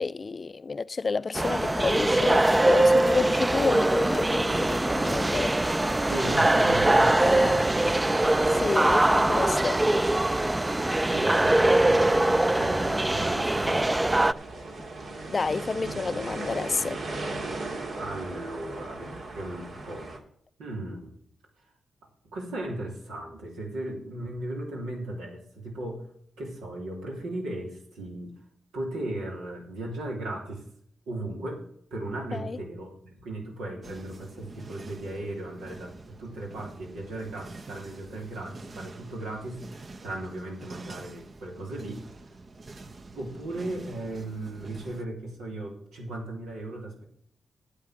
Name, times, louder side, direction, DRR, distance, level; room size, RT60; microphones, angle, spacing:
voice 1, 0.0-5.6 7.2-7.6 8.5-9.8 15.3-17.0 32.3-32.6, left 4 dB, 50° left, 0.4 m, -29 dB
sound 1, 1.3-14.3, right 1 dB, 20° right, 0.5 m, -22 dB
voice 2, 6.1-8.7 11.1-14.3 18.0-20.1 20.6-21.1 22.2-26.0 26.4-28.4 28.7-30.6 31.1-31.6 31.9-42.3 43.1-47.0, right 1 dB, 90° right, 3.0 m, -36 dB
sound 2, 8.0-20.2, right 2 dB, 70° right, 2.3 m, -39 dB
sound 3, 33.8-45.1, right 3 dB, 50° right, 0.9 m, -46 dB
9.1 x 7.4 x 6.3 m
supercardioid pair, 45°, 0 cm